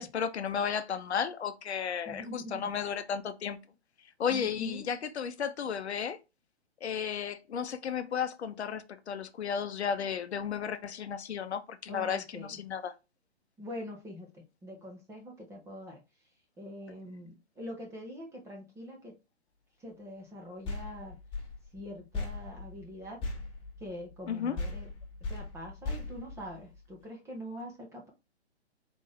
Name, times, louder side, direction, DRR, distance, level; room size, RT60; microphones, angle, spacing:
voice 1, 0.0-3.6 4.2-6.2 6.8-12.9 24.3-24.6, left 7 dB, 75° left, 0.8 m, -33 dB
voice 2, 2.0-2.7 4.3-4.9 11.9-12.6 13.6-16.0 16.6-19.2 19.8-21.2 21.7-23.2 23.8-24.9 25.2-28.1, equal, 10° right, 1.1 m, -44 dB
sound 1, 20.6-24.3 24.6-27.0, left 3 dB, 15° left, 1.5 m, -39 dB
4.0 x 3.6 x 3.3 m
hypercardioid pair, 145°, 33 cm